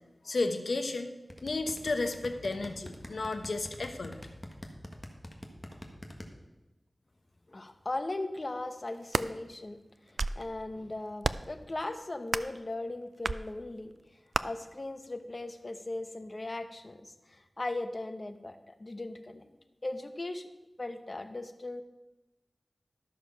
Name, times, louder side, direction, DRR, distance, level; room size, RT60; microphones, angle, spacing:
voice 1, 0.2-1.1 1.4-4.1, left 3 dB, 85° left, 6 dB, 1.0 m, -32 dB
sound 1, 1.3-6.3, left 1 dB, 15° left, 1.5 m, -44 dB
voice 2, 7.5-9.8 10.1-13.9 14.4-19.4 19.8-20.5 20.8-21.8, left 2 dB, 40° left, 8 dB, 0.9 m, -38 dB
sound 2, 8.9-9.3 9.9-10.5 11.2-11.6 12.3-12.6 13.2-13.4 14.3-14.4, right 3 dB, 70° right, 0.3 m, -31 dB
12.5 x 6.7 x 5.8 m, 1.0 s
wide cardioid pair, 80°, 0 cm